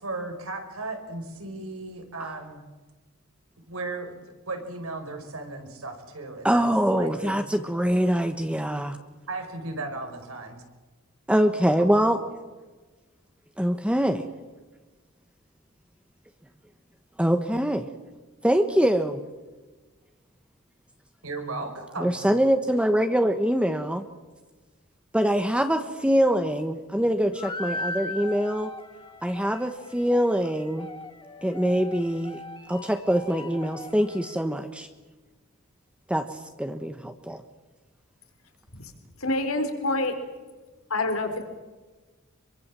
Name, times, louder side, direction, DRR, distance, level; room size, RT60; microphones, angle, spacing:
voice 1, 0.0-2.6 3.7-6.6 6.9-7.5 9.3-10.6 11.7-11.9 21.2-22.3, right 2 dB, 85° right, 5 dB, 5.1 m, -36 dB
voice 2, 6.4-9.0 11.3-12.2 13.6-14.2 17.2-17.9 18.4-19.2 22.0-24.0 25.1-28.7 29.2-30.9 31.4-32.4 32.7-34.9 36.1-37.4, equal, 5° right, 7 dB, 1.1 m, -24 dB
sound 1, 27.3-34.4, left 2 dB, 25° left, 2.6 m, -39 dB
voice 3, 39.2-40.1 40.9-41.4, left 2 dB, 80° left, 7 dB, 4.2 m, -27 dB
26.0 x 23.5 x 7.5 m, 1.3 s
head